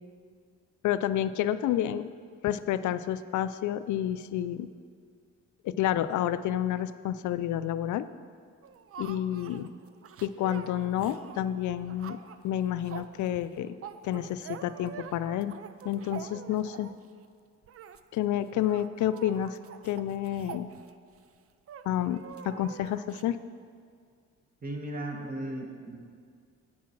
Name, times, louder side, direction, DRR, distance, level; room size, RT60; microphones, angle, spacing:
voice 1, 0.8-2.1 2.4-4.7 5.6-8.1 9.0-9.7 10.2-12.2 12.4-13.8 14.0-15.6 15.8-16.9 18.1-19.6 19.8-20.7 21.9-23.4, left 11 dB, 75° left, 13 dB, 0.5 m, -29 dB
sound 1, 8.6-17.1 17.6-18.0 18.3-18.4 18.6-21.2 21.7-23.2, right 8 dB, 50° right, 0.6 m, -46 dB
voice 2, 24.6-26.0, right 1 dB, 30° right, 1 dB, 1.7 m, -36 dB
8.5 x 8.5 x 6.0 m, 2.1 s
cardioid pair, 90°, 30 cm